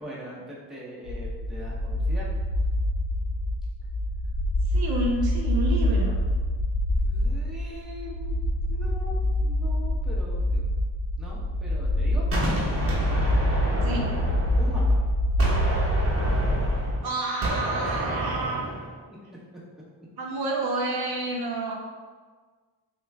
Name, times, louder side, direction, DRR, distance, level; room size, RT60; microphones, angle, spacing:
voice 1, 0.0-2.3 7.0-8.4 8.7-10.7 11.2-12.3 14.6-15.0 17.8-18.0, equal, ahead, -6 dB, 0.9 m, -41 dB
sound 1, 1.1-17.0, left 1 dB, 55° left, 0.5 m, -26 dB
voice 2, 4.7-6.2 13.8-14.2 17.0-18.6 20.2-21.7, right 2 dB, 55° right, -1 dB, 0.6 m, -29 dB
Gunshot gunfire, 12.3-15.0 15.4-18.9, right 1 dB, 30° right, 0.9 m, -30 dB
3.0 x 2.2 x 3.3 m, 1.5 s
cardioid pair, 65°, 44 cm